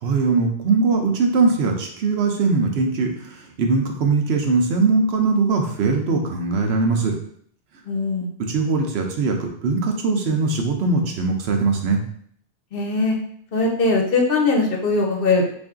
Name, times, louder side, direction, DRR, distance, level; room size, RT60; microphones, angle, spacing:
voice 1, 0.0-7.2 8.4-12.0, right 4 dB, 70° right, 3 dB, 0.9 m, -21 dB
voice 2, 7.9-8.3 12.7-13.2 13.5-15.5, left 3 dB, 60° left, 0 dB, 0.9 m, -20 dB
3.4 x 2.6 x 3.6 m, 0.62 s
omnidirectional pair, 1.2 m